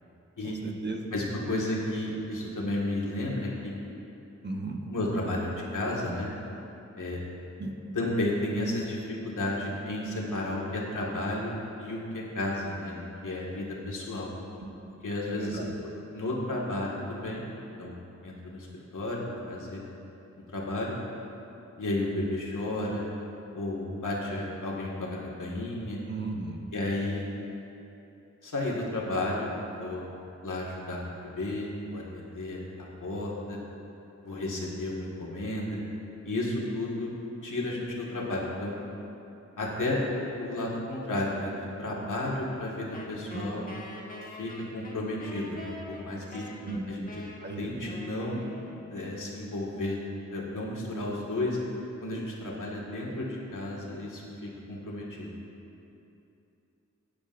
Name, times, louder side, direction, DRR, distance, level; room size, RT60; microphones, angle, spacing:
voice 1, 0.4-1.1 4.4-4.8 7.6-7.7 14.6-14.7 15.3-15.7 26.1-26.6 43.3-43.5 46.6-46.8 47.4-47.8, right 3 dB, 35° right, 1 dB, 1.0 m, -36 dB
voice 2, 1.1-3.7 4.9-6.3 7.0-7.2 7.9-14.3 15.0-15.7 16.1-17.4 17.8-18.7 18.9-19.8 20.5-21.0 21.8-23.1 23.5-26.0 26.7-27.2 28.4-29.5 29.8-30.1 30.4-33.6 34.2-35.8 36.2-37.1 37.4-38.7 39.6-41.5 41.8-43.7 44.4-46.4 46.9-47.0 47.6-48.4 48.9-50.0 50.3-51.6 52.0-55.3, left 1 dB, 85° left, -4 dB, 1.9 m, -32 dB
Wind instrument woodwind instrument, 42.9-49.2, left 2 dB, 25° left, 1.5 m, -45 dB
15.5 x 9.9 x 2.6 m, 2.9 s
wide cardioid pair, 85°, 30 cm